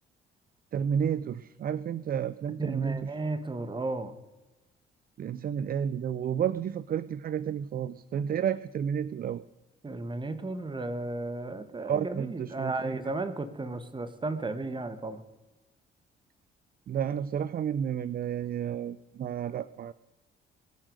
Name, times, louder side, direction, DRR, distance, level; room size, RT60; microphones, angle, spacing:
voice 1, 0.7-3.1 5.2-9.4 11.8-13.0 16.9-19.9, right 8 dB, 50° right, 17 dB, 0.5 m, -31 dB
voice 2, 2.6-4.1 9.8-15.2, right 2 dB, 25° right, 10 dB, 1.7 m, -34 dB
21.5 x 7.5 x 6.5 m, 1.0 s
cardioid pair, 90°, 20 cm